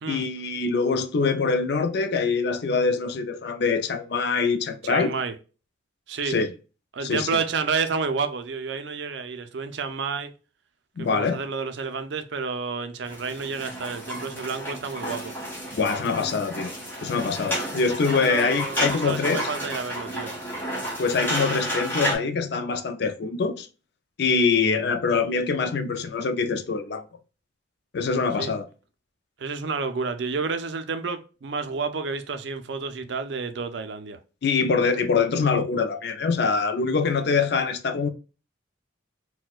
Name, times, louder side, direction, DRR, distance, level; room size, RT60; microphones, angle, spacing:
voice 1, 0.1-5.1 6.3-6.5 7.0-7.4 11.0-11.4 15.7-16.7 17.0-19.5 21.0-23.7 24.2-27.0 27.9-28.7 34.4-38.1, left 4 dB, 55° left, 0.4 m, -24 dB
voice 2, 4.8-5.4 6.1-6.4 6.9-10.3 11.0-15.4 18.1-20.4 28.4-28.5 29.4-34.2, right 5 dB, 65° right, 0.4 m, -30 dB
sound 1, 13.1-22.2, equal, 10° left, 1.2 m, -31 dB
4.1 x 2.2 x 2.3 m
head